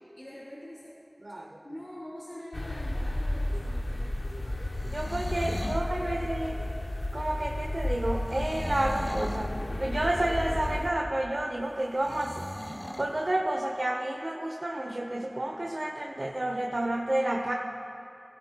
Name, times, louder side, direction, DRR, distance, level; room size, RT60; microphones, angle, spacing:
voice 1, 0.2-1.0 1.3-4.1 5.4-6.2, equal, 45° left, -9 dB, 3.2 m, -45 dB
sound 1, 2.5-10.9, left 1 dB, 75° left, 0.8 m, -33 dB
sound 2, 4.6-5.9 8.2-9.5 12.0-13.1, equal, 30° left, 1.0 m, -39 dB
voice 2, 4.8-6.5 7.1-12.4 13.0-17.5, right 1 dB, 65° right, 0 dB, 0.8 m, -30 dB
17.0 x 16.5 x 2.3 m, 2.7 s
wide cardioid pair, 45°, 0 cm